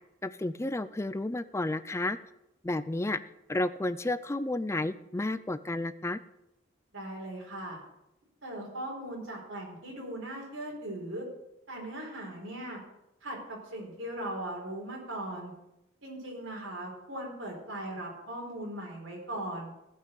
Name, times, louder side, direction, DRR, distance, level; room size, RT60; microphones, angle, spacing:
voice 1, 0.2-2.2 2.6-3.2 3.5-6.2, left 2 dB, 15° left, 13 dB, 0.4 m, -31 dB
voice 2, 6.9-7.8 8.4-11.2 11.7-12.8 13.2-15.5 16.0-19.7, right 1 dB, 75° right, -1 dB, 4.3 m, -39 dB
16.0 x 5.6 x 6.5 m, 0.88 s
head